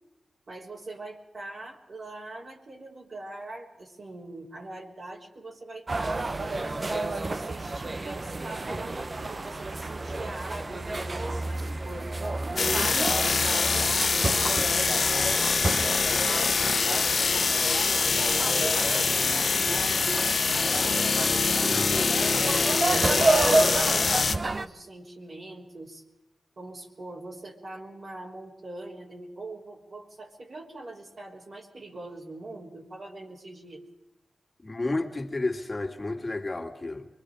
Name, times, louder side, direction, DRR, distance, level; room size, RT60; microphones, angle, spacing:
voice 1, 0.5-6.3 6.8-12.1 12.6-14.3 14.7-20.8 21.6-22.1 22.4-26.0 26.6-33.9, right 2 dB, 60° right, -3 dB, 3.4 m, -42 dB
sound 1, 5.9-24.7, right 2 dB, 35° right, 0.9 m, -30 dB
sound 2, 12.6-24.3, left 5 dB, 65° left, 1.0 m, -24 dB
voice 2, 21.7-22.1 34.6-37.1, left 2 dB, 30° left, 2 dB, 2.7 m, -31 dB
24.5 x 23.0 x 5.0 m, 0.97 s
wide cardioid pair, 85°, 0 cm